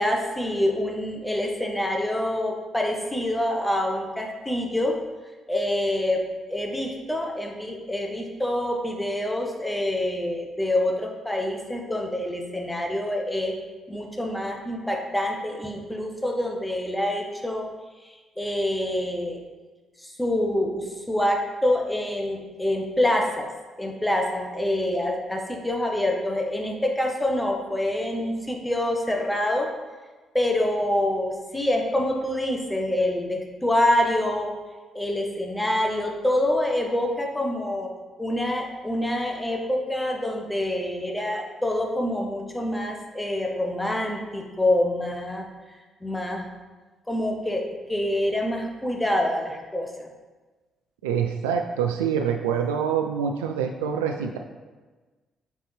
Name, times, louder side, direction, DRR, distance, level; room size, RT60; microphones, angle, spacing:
voice 1, 0.0-4.9 5.5-6.2 6.5-13.6 13.9-17.7 18.0-19.4 20.0-23.5 23.8-29.7 30.3-34.5 34.9-37.9 38.2-45.4 46.0-46.5 47.1-47.6 47.9-50.1, left 1 dB, 10° left, 1 dB, 1.3 m, -26 dB
voice 2, 51.0-54.4, right 7 dB, 80° right, 4 dB, 0.3 m, -25 dB
7.9 x 4.1 x 3.4 m, 1.3 s
hypercardioid pair, 45°, 0 cm